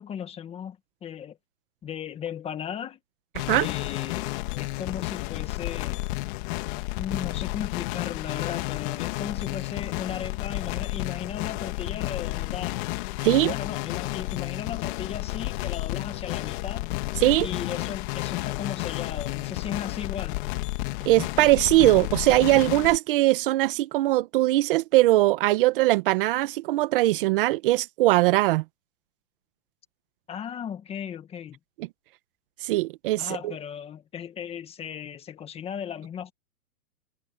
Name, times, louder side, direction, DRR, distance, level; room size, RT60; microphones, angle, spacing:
voice 1, 0.0-1.4 1.8-3.0 3.6-6.1 7.0-12.8 13.5-16.9 17.4-20.4 30.3-31.6 33.2-36.3, left 8 dB, 15° left, 1.6 m, -36 dB
sound 1, 3.3-23.0, left 21 dB, 35° left, 2.0 m, -31 dB
voice 2, 21.0-28.6 32.6-33.5, right 17 dB, 40° right, 1.4 m, -21 dB
hypercardioid pair, 155°, 44 cm